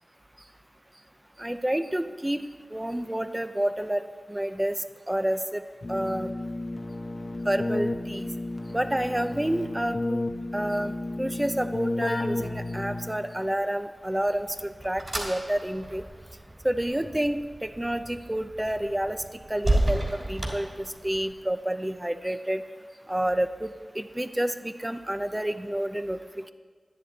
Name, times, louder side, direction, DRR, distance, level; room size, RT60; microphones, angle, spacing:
voice 1, 1.4-2.4 2.7-4.0 4.3-4.8 5.1-5.6 5.9-6.3 7.5-8.3 8.7-10.2 10.5-10.9 11.2-16.0 16.6-19.2 19.5-22.6 23.1-23.7 23.9-26.2, right 1 dB, 15° right, 10 dB, 0.6 m, -29 dB
Keyboard (musical), 5.8-13.4, left 2 dB, 60° left, 0.9 m, -32 dB
sound 1, 14.0-21.4, right 1 dB, 40° right, 3.1 m, -32 dB
11.5 x 10.5 x 4.2 m, 1.5 s
wide cardioid pair, 60°, 0 cm